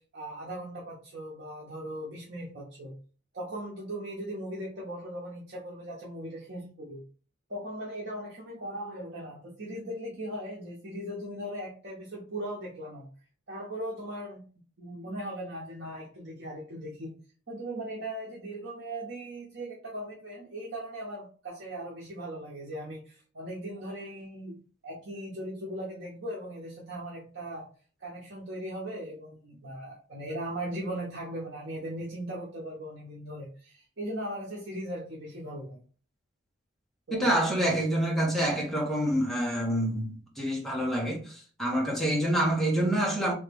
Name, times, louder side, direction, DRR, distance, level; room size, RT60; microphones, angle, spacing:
voice 1, 0.0-3.0 3.3-7.0 7.5-13.1 13.5-14.4 14.8-17.1 17.5-27.7 28.0-35.8 37.1-37.3, right 1 dB, 60° right, 1.0 m, -38 dB
voice 2, 37.1-43.3, right 1 dB, ahead, 1.1 m, -27 dB
3.4 x 3.2 x 3.4 m
head